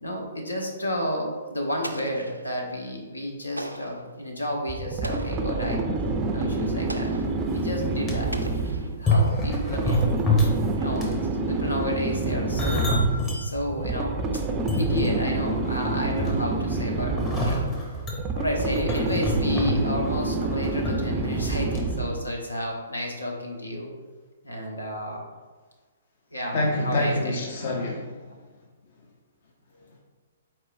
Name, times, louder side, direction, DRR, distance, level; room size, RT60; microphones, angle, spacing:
voice 1, 0.0-5.8 6.3-7.1 7.5-8.4 8.9-14.2 14.8-17.6 18.4-23.9 24.4-25.3 26.3-27.4, left 1 dB, 80° left, 0 dB, 0.9 m, -31 dB
Explosion, 1.8-2.7 3.6-4.1 5.0-5.6 6.9-7.4 8.3-9.2, right 1 dB, 90° right, 0.4 m, -38 dB
sound 1, 4.7-22.3, right 3 dB, 20° right, 0.4 m, -28 dB
sound 2, 7.2-7.3 7.8-8.2 8.9-10.7 11.0-11.3 12.1-13.4 13.9-14.0 14.5-15.5 15.8-16.6 17.2-20.9 21.2-21.4 21.7-21.8, left 1 dB, 20° left, 0.9 m, -26 dB
voice 2, 26.5-28.2, left 1 dB, 50° left, 0 dB, 0.6 m, -26 dB
4.5 x 4.4 x 2.6 m, 1.4 s
figure-of-eight pair, 120°, 0 cm